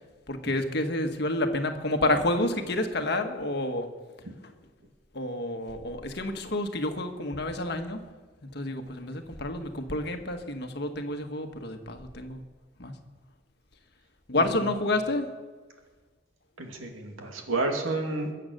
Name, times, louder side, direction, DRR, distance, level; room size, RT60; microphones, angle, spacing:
voice 1, 0.3-3.9 5.1-8.0 8.4-12.4 12.8-13.0 14.3-15.3, left 1 dB, 55° left, 6 dB, 1.5 m, -29 dB
voice 2, 16.6-18.3, right 2 dB, 85° right, 3 dB, 2.6 m, -30 dB
22.0 x 8.0 x 6.7 m, 1.4 s
head